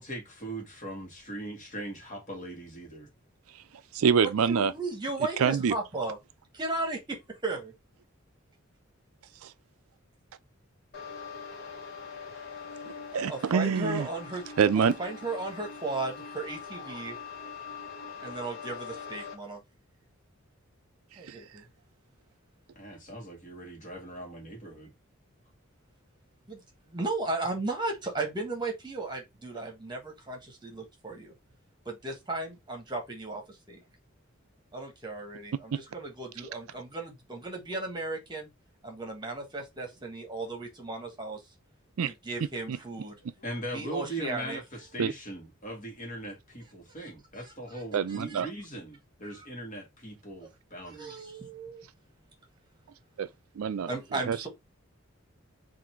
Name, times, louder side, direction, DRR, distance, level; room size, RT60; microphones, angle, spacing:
voice 1, 0.0-3.1 22.7-24.9 43.4-51.3, right 1 dB, 35° left, 1.7 m, -40 dB
voice 2, 3.9-4.7 5.4-5.7 9.4-9.5 12.9-14.1 14.6-14.9 21.3-21.4 35.7-35.8 42.0-42.1 42.7-42.8 45.0-45.1 47.9-48.5 53.2-53.3 53.6-54.5, right 6 dB, 90° right, 0.4 m, -26 dB
voice 3, 4.5-6.2 6.5-7.7 13.3-14.4 14.8-17.2 18.2-19.6 21.2-21.6 26.5-31.3 31.8-33.8 34.7-38.5 38.8-41.4 42.0-43.2 43.7-44.6 47.7-47.8 48.1-48.4 49.4-49.5 50.8-51.8 53.9-54.5, right 2 dB, 20° right, 1.3 m, -35 dB
sound 1, 10.9-19.3, left 5 dB, 50° left, 1.3 m, -43 dB
3.8 x 2.6 x 4.3 m
head